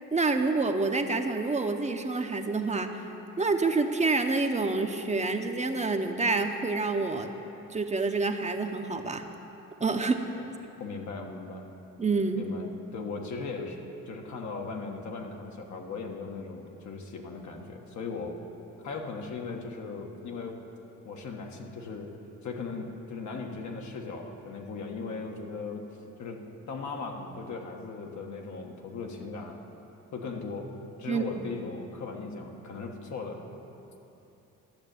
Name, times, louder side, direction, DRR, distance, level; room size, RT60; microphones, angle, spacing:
voice 1, 0.1-3.1 3.4-7.3 7.7-9.2 9.8-10.2 12.0-12.5 31.1-31.4, right 3 dB, 25° right, 5 dB, 0.8 m, -27 dB
voice 2, 10.8-11.7 12.3-13.8 14.0-18.4 18.8-20.6 21.0-22.1 22.4-25.8 26.2-29.6 30.1-33.4, left 4 dB, 70° left, 2 dB, 1.4 m, -38 dB
12.0 x 6.7 x 8.9 m, 3.0 s
cardioid pair, 90°, 30 cm